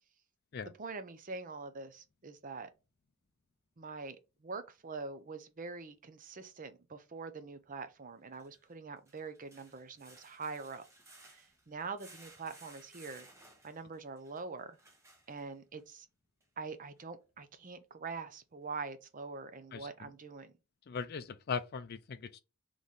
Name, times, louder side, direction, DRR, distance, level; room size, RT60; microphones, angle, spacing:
voice 1, 0.8-2.7 3.8-4.2 4.4-10.8 11.2-13.3 13.6-14.8 15.3-16.1 16.6-20.5, right 4 dB, 35° right, 0.6 m, -44 dB
sound 1, 5.7-5.8 8.2-15.8 16.4-16.5 17.0-17.1, right 2 dB, 15° right, 0.9 m, -59 dB
voice 2, 19.7-20.1 20.9-22.4, left 5 dB, 45° left, 0.4 m, -39 dB
4.0 x 3.1 x 3.6 m
head